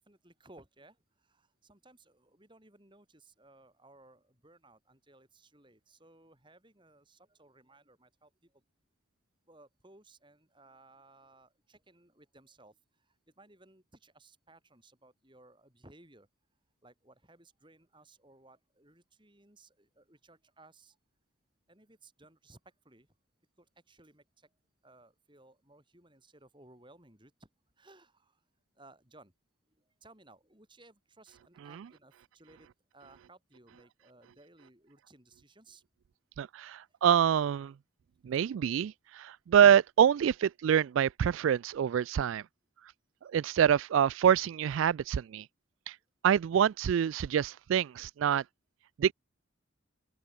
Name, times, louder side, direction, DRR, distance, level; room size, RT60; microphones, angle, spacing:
voice 1, 0.0-8.6 9.4-16.3 16.8-21.0 21.7-23.1 23.6-24.5 24.8-27.5 27.8-28.4 28.7-29.3 29.7-35.8, right 2 dB, 25° right, 6.6 m, -60 dB
voice 2, 36.4-37.7 38.2-42.4 43.2-45.5 45.9-46.0 46.2-48.4 49.0-49.1, right 8 dB, 80° right, 0.3 m, -26 dB
open air
head